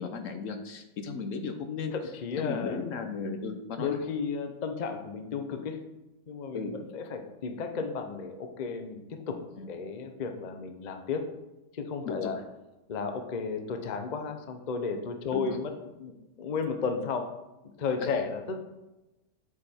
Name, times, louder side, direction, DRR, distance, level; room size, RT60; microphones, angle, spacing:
voice 1, 0.0-1.9 2.4-4.0 6.5-6.7 9.6-9.7 12.0-12.3 15.3-15.6, left 5 dB, 60° left, 7 dB, 0.9 m, -35 dB
voice 2, 1.9-2.8 3.8-5.8 6.3-9.4 9.7-11.3 11.7-12.4 12.9-15.7 16.0-16.1 16.4-17.3 17.6-18.6, left 5 dB, 75° left, 6 dB, 0.4 m, -33 dB
8.3 x 5.0 x 4.3 m, 1.0 s
omnidirectional pair, 1.9 m